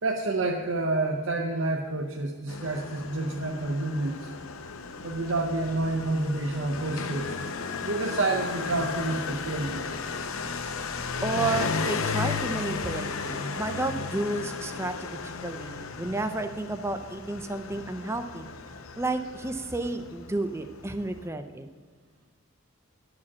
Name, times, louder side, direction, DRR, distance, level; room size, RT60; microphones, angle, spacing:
voice 1, 0.0-4.3 5.0-7.4 7.8-10.0, right 2 dB, 60° right, 2 dB, 0.7 m, -29 dB
Motorcycle, 2.5-21.3, left 5 dB, 70° left, 0.7 m, -35 dB
voice 2, 11.2-18.5 19.0-21.7, right 2 dB, 10° right, 8 dB, 0.4 m, -31 dB
11.0 x 4.9 x 7.2 m, 1.5 s
head